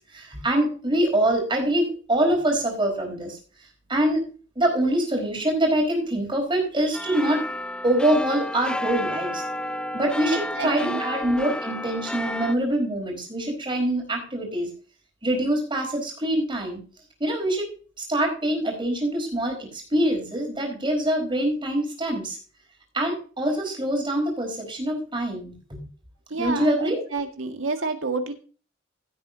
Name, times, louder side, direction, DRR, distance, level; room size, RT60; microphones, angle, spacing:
voice 1, 0.1-3.4 3.9-4.2 4.5-7.5 7.8-9.4 9.9-14.7 15.2-16.8 17.2-17.7 18.0-22.4 22.9-25.8 26.4-27.0, right 1 dB, 25° right, 1 dB, 4.6 m, -24 dB
sound 1, 6.9-12.6, left 1 dB, 5° left, 0.5 m, -31 dB
voice 2, 10.3-11.0 26.3-28.3, right 3 dB, 85° right, 5 dB, 1.9 m, -29 dB
16.0 x 8.5 x 2.8 m, 0.39 s
head